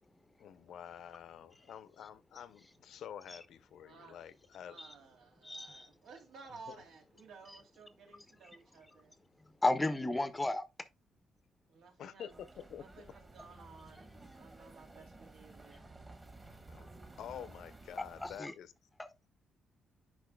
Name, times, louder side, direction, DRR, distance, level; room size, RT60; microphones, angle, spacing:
voice 1, 0.4-4.8 6.7-6.8 12.0-12.9 16.7-16.9 17.2-18.7, left 9 dB, 65° left, 0.6 m, -48 dB
voice 2, 3.8-4.2 4.6-9.2 11.7-12.4 12.8-15.9, right 4 dB, 85° right, 2.7 m, -56 dB
voice 3, 5.4-5.9 9.6-10.6 18.2-18.5 19.0-19.1, left 2 dB, 10° left, 0.6 m, -33 dB
sound 1, 12.3-18.4, right 2 dB, 20° right, 1.2 m, -54 dB
10.5 x 5.2 x 2.2 m
cardioid pair, 160°, 0 cm